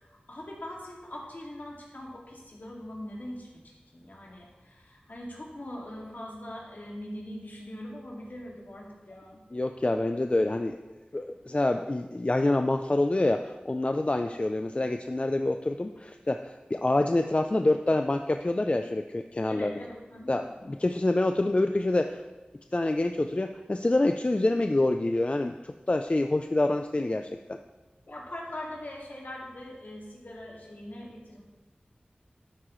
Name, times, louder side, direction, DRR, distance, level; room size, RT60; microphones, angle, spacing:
voice 1, 0.0-9.4 19.5-20.4 28.1-31.4, left 1 dB, 65° left, -2 dB, 2.2 m, -42 dB
voice 2, 9.5-10.8 11.1-19.7 20.3-22.2 22.7-27.6, left 2 dB, 35° left, 6 dB, 0.4 m, -27 dB
11.5 x 8.6 x 3.1 m, 1.1 s
wide cardioid pair, 60°, 3 cm